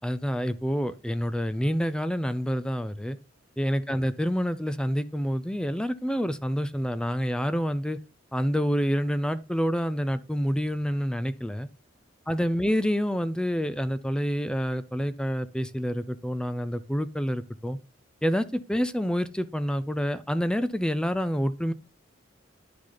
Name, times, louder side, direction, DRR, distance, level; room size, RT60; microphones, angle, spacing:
voice 1, 0.0-3.2 3.6-8.0 8.3-11.7 12.3-17.8 18.2-21.7, equal, 5° left, 0.4 m, -27 dB
10.0 x 6.3 x 3.9 m
head